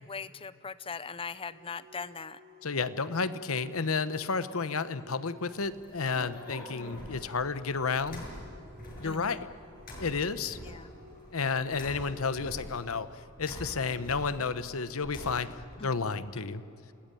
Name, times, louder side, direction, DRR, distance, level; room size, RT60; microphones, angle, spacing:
voice 1, 0.0-2.4 9.0-9.4 10.7-10.9 15.8-15.9, left 5 dB, 25° left, 16 dB, 0.6 m, -40 dB
sound 1, 1.5-12.7, left 1 dB, 80° right, 4.5 m, -55 dB
voice 2, 2.6-8.2 9.0-9.5 10.0-10.6 11.3-13.1 13.4-15.5 15.8-16.6, left 4 dB, 80° left, 13 dB, 1.0 m, -31 dB
sound 2, 5.5-15.7, equal, 45° left, 6.3 m, -46 dB
28.5 x 19.0 x 9.1 m, 3.0 s
head